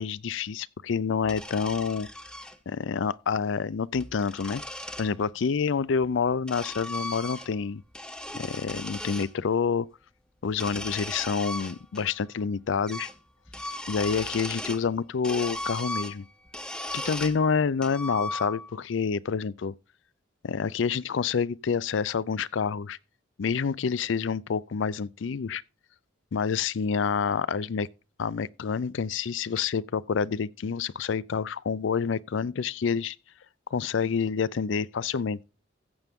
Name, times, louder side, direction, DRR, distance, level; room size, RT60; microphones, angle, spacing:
voice 1, 0.0-2.1 2.7-4.6 5.0-7.8 8.3-9.9 10.4-13.1 13.9-16.3 16.9-19.7 20.4-23.0 23.4-25.6 26.3-27.9 28.2-33.2 33.7-35.4, left 6 dB, 65° left, 0.4 m, -28 dB
sound 1, 1.2-2.6 3.8-5.1 6.0-7.6 7.9-9.3 10.5-12.2 12.4-12.5 12.9-13.2 13.5-14.9 15.2-17.4 17.8-18.8, left 1 dB, 5° left, 0.7 m, -37 dB
15.0 x 7.9 x 3.6 m
head